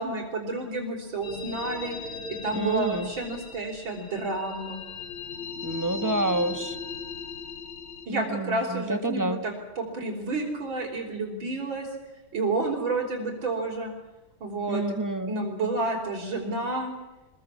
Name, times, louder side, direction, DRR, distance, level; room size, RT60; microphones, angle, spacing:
voice 1, 0.0-2.0 2.3-4.8 8.1-11.9 12.3-13.9 14.4-14.8 15.3-16.9, right 2 dB, 65° right, -4 dB, 4.6 m, -30 dB
sound 1, 1.2-8.1, left 5 dB, 85° left, 3.2 m, -38 dB
voice 2, 2.5-3.1 5.6-6.8 8.1-9.4 14.7-15.3, right 2 dB, 30° right, 8 dB, 0.3 m, -28 dB
26.0 x 22.0 x 7.3 m, 1.1 s
omnidirectional pair, 2.3 m